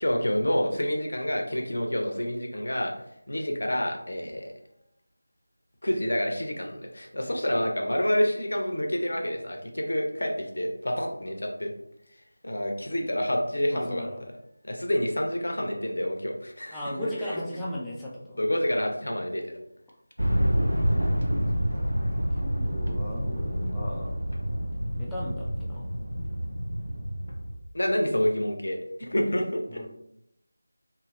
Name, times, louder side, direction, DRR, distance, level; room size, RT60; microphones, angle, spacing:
voice 1, 0.0-2.9 3.3-4.5 5.8-11.7 12.4-14.1 14.6-17.4 18.4-19.4 27.7-29.8, equal, 60° left, 2 dB, 0.6 m, -28 dB
voice 2, 13.7-14.2 16.7-18.4 20.8-21.8 22.4-24.1 25.0-25.9 29.7-29.9, left 1 dB, 5° left, -7 dB, 0.4 m, -37 dB
sound 1, 20.2-27.6, equal, 80° right, 0.7 m, -28 dB
2.9 x 2.7 x 2.5 m, 0.79 s
figure-of-eight pair, 165°, 0 cm